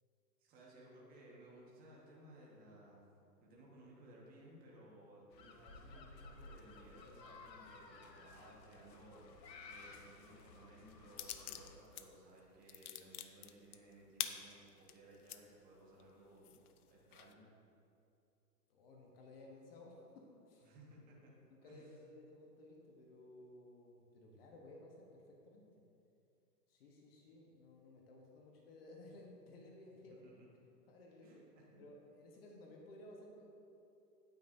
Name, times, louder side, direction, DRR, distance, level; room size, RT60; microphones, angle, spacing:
voice 1, 0.4-3.0 3.4-16.5 16.9-17.5 20.6-21.3 21.6-21.9 30.2-30.3 31.2-31.9, right 1 dB, 15° right, -4 dB, 1.5 m, -60 dB
sound 1, 5.3-11.8, left 3 dB, 80° left, 1.0 m, -56 dB
sound 2, 11.2-12.1 12.4-15.4 15.9-16.0 16.4-17.3, left 10 dB, 65° left, 0.6 m, -45 dB
voice 2, 18.7-20.7 21.5-25.8 26.7-30.2 30.9-31.4 31.8-33.5, left 1 dB, 35° left, -1 dB, 1.1 m, -57 dB
9.2 x 8.9 x 2.7 m, 2.6 s
hypercardioid pair, 145°, 50 cm